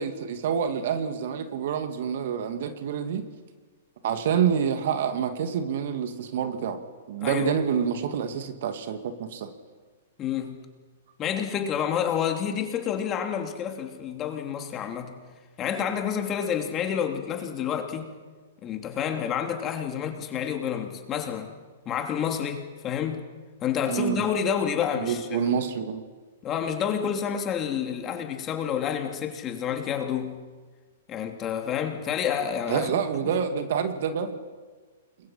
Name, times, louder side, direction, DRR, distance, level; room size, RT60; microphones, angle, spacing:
voice 1, 0.0-3.2 4.0-6.8 7.1-9.5 23.9-24.2 25.0-26.0 32.7-34.4, right 7 dB, 60° right, 8 dB, 2.3 m, -27 dB
voice 2, 10.2-10.6 11.2-15.2 15.6-18.1 18.6-21.5 21.8-23.3 23.6-25.5 26.4-30.4 31.1-32.9 33.2-33.3, left 8 dB, 30° left, 4 dB, 3.1 m, -29 dB
29.5 x 22.0 x 5.8 m, 1.4 s
hypercardioid pair, 115°, 0 cm